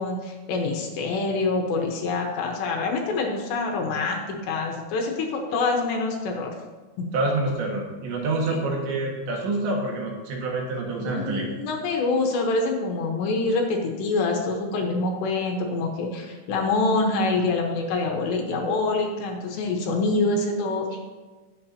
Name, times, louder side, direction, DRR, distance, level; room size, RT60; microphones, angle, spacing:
voice 1, 0.0-6.5 8.5-8.6 11.0-21.0, left 3 dB, 70° left, 1 dB, 3.3 m, -26 dB
voice 2, 7.1-11.5, right 2 dB, 70° right, -1 dB, 3.9 m, -27 dB
20.5 x 8.0 x 2.9 m, 1.3 s
omnidirectional pair, 5.5 m